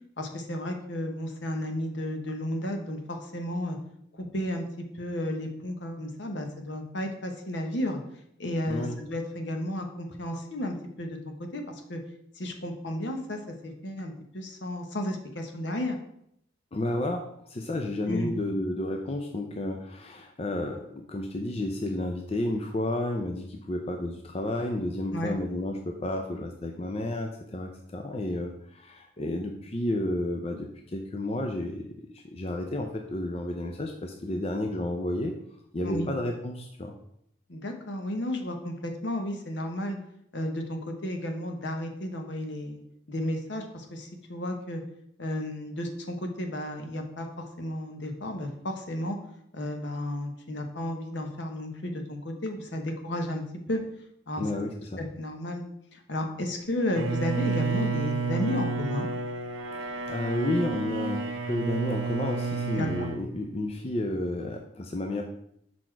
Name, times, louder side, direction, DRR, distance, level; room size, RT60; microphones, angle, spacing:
voice 1, 0.2-3.8 4.2-4.7 4.9-8.0 8.4-11.6 11.9-12.0 12.4-16.0 18.1-18.3 25.1-25.4 35.8-36.1 37.5-40.0 40.3-42.8 43.1-44.8 45.2-47.3 47.6-49.2 49.5-53.8 54.3-54.4 55.0-55.6 55.9-59.1 62.7-63.1, left 1 dB, 65° left, 4 dB, 0.9 m, -33 dB
voice 2, 16.7-31.9 32.1-35.3 35.7-36.9 54.4-55.0 59.7-65.2, left 1 dB, 30° left, 3 dB, 0.5 m, -31 dB
Bowed string instrument, 57.0-63.2, right 4 dB, 90° right, 0.7 m, -30 dB
6.1 x 4.2 x 4.4 m, 0.73 s
head